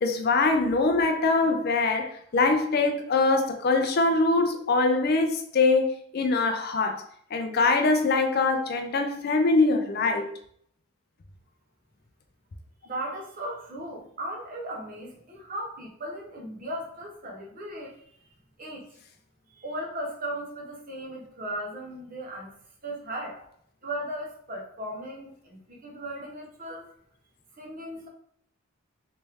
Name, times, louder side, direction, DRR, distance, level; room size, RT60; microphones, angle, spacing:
voice 1, 0.0-7.0 7.3-10.3, left 3 dB, 45° left, 5 dB, 0.4 m, -23 dB
voice 2, 12.8-18.0 18.6-18.9 19.5-22.5 22.8-23.4 23.8-26.9 27.6-28.1, right 1 dB, 40° right, -1 dB, 0.8 m, -37 dB
3.3 x 3.1 x 3.3 m, 0.66 s
head